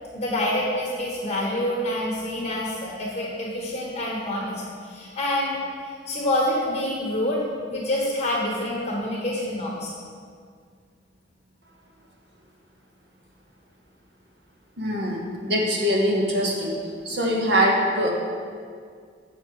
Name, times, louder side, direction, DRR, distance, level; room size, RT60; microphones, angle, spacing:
voice 1, 0.1-7.4 7.7-9.9, left 1 dB, 35° left, -4 dB, 1.3 m, -27 dB
voice 2, 14.8-16.7 17.0-18.1, equal, 65° right, -1 dB, 1.5 m, -23 dB
8.0 x 6.6 x 4.7 m, 2.1 s
head